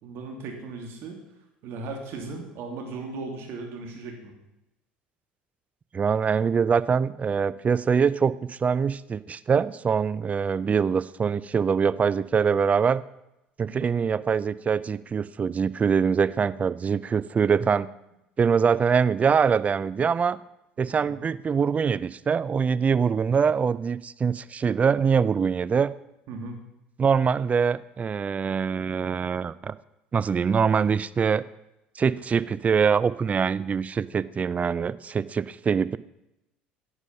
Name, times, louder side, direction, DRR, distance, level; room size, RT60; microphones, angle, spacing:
voice 1, 0.0-1.2 1.6-4.3 13.6-14.0 21.1-21.2 26.3-26.6, right 3 dB, 60° right, 2 dB, 2.7 m, -37 dB
voice 2, 5.9-13.0 13.6-17.9 18.4-20.4 20.8-25.9 27.0-29.7 30.1-31.4 32.0-36.0, right 6 dB, 30° right, 17 dB, 0.5 m, -24 dB
11.0 x 8.1 x 5.5 m, 0.89 s
hypercardioid pair, 65°, 5 cm